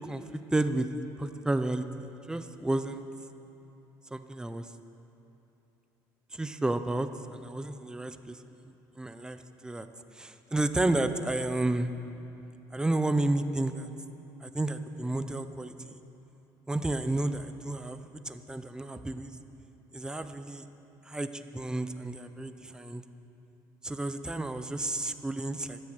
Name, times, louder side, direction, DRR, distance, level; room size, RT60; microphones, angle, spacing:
voice 1, 0.5-0.9 1.2-1.9 2.3-3.1 4.1-4.7 6.3-8.4 9.0-9.9 10.1-11.9 12.7-13.9 14.4-16.0 16.7-18.0 18.2-19.3 19.9-20.7 21.1-23.0 23.8-25.8, right 2 dB, 10° right, 10 dB, 0.7 m, -31 dB
13.0 x 9.7 x 8.1 m, 2.9 s
cardioid pair, 110°, 8 cm